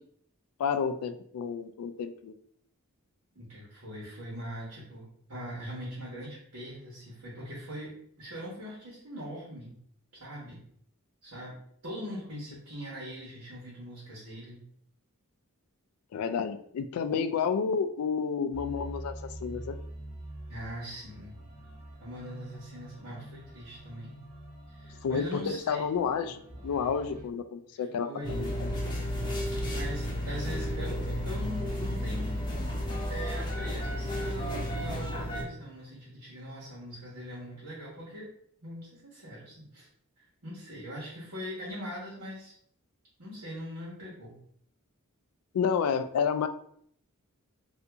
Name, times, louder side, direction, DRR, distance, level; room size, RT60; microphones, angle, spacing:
voice 1, 0.6-2.3 16.1-19.1 19.4-19.8 25.0-28.7 45.5-46.5, left 6 dB, 70° left, 10 dB, 0.3 m, -30 dB
voice 2, 3.3-9.8 10.1-10.6 11.2-11.6 11.8-14.7 20.5-21.4 22.0-24.2 24.7-25.8 27.7-28.4 29.7-32.4 33.1-38.3 38.6-39.9 40.2-42.5 43.2-44.4, equal, 85° right, -7 dB, 1.3 m, -41 dB
sound 1, 18.5-27.2, right 1 dB, 10° right, 1.3 m, -45 dB
sound 2, 28.2-35.4, left 1 dB, 20° left, 0.7 m, -32 dB
2.7 x 2.5 x 3.4 m, 0.64 s
head